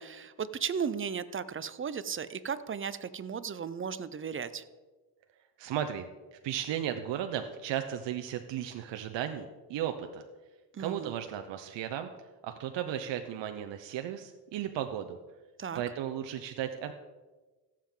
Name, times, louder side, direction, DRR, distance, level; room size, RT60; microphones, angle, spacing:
voice 1, 0.0-4.6 10.7-11.1 15.6-15.8, right 7 dB, 30° right, 14 dB, 0.5 m, -35 dB
voice 2, 5.6-6.1 6.3-10.2 10.8-12.1 12.4-15.2 15.7-16.9, right 10 dB, 75° right, 7 dB, 0.8 m, -35 dB
16.5 x 7.5 x 3.8 m, 1.3 s
cardioid pair, 95°, 44 cm